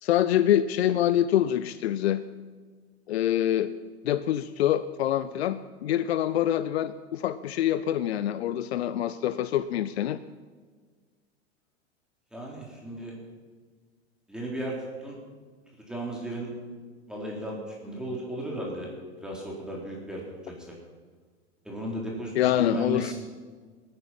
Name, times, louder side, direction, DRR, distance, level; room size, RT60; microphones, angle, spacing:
voice 1, 0.0-2.2 3.1-3.7 4.0-10.2 22.4-23.1, left 11 dB, 70° left, 14 dB, 0.6 m, -25 dB
voice 2, 12.3-13.1 14.3-15.2 15.9-16.5 17.1-18.9 19.2-20.7 21.6-23.1, right 1 dB, ahead, -4 dB, 3.8 m, -35 dB
20.5 x 9.7 x 5.7 m, 1.5 s
figure-of-eight pair, 90°, 33 cm